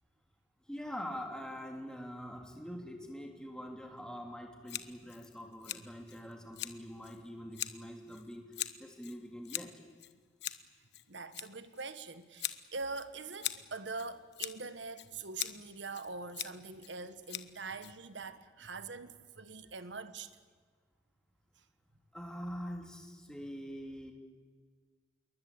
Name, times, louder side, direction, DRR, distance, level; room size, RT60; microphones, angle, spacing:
voice 1, 0.7-8.5 8.8-9.7 22.1-24.1, equal, 5° left, 3.3 m, -44 dB
Scissors, 4.7-18.4, left 12 dB, 75° left, 1.2 m, -44 dB
voice 2, 11.1-20.3, right 4 dB, 90° right, 1.5 m, -43 dB
28.0 x 22.5 x 8.8 m
head